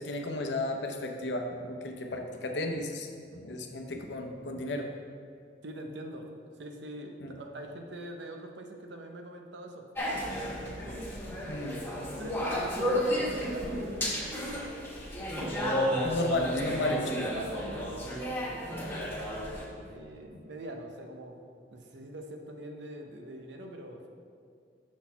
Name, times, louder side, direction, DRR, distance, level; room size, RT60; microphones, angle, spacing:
voice 1, 0.0-4.9 7.2-7.3 10.7-10.8 11.3-12.0 16.0-17.3 19.8-19.9, left 2 dB, 80° left, 4 dB, 0.7 m, -34 dB
voice 2, 5.6-6.3 6.6-9.8 11.4-11.8 12.2-14.5 15.6-16.1 16.8-17.0 17.3-19.2 19.8-21.4 21.7-24.1, right 1 dB, 80° right, 3 dB, 0.7 m, -43 dB
sound 1, 10.0-19.6, equal, 15° left, 1.0 m, -32 dB
6.1 x 4.2 x 5.6 m, 2.3 s
head